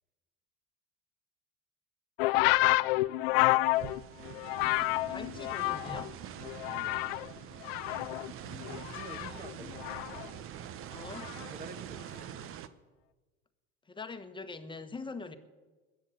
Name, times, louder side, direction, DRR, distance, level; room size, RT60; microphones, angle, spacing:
sound 1, 2.2-6.1 6.4-7.3 7.6-10.3 11.1-11.5, left 19 dB, 75° left, 0.5 m, -29 dB
voice 1, 2.4-3.2 6.6-7.0 8.3-10.0 11.5-12.3, right 3 dB, 30° right, 7 dB, 1.8 m, -49 dB
voice 2, 3.7-4.0 5.0-6.2 10.9-11.3 13.9-15.4, left 4 dB, 15° left, 9 dB, 1.3 m, -43 dB
sound 2, 3.7-12.7, right 10 dB, 50° right, 1.0 m, -45 dB
21.0 x 7.2 x 8.1 m, 1.3 s
hypercardioid pair, 90°, 29 cm